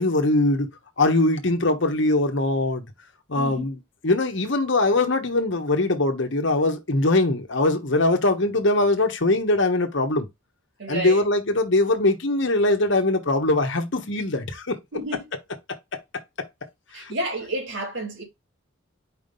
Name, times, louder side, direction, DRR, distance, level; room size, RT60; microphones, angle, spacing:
voice 1, 0.0-2.8 3.3-3.8 4.0-10.3 10.9-14.8 16.9-17.1, left 2 dB, 60° left, 1.2 m, -22 dB
voice 2, 3.3-3.7 10.8-11.2 14.9-15.3 16.9-18.2, right 1 dB, 60° right, 3.1 m, -31 dB
5.1 x 3.5 x 5.3 m
head